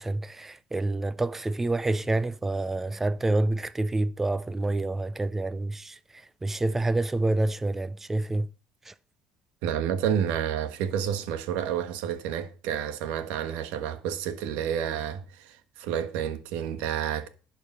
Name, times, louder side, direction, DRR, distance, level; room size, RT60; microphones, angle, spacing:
voice 1, 0.0-6.0 6.4-8.5 8.9-9.0, right 2 dB, 10° right, 0.5 m, -27 dB
voice 2, 9.6-17.3, right 9 dB, 85° right, 1.4 m, -30 dB
11.5 x 5.1 x 6.6 m
cardioid pair, 120°, 2 cm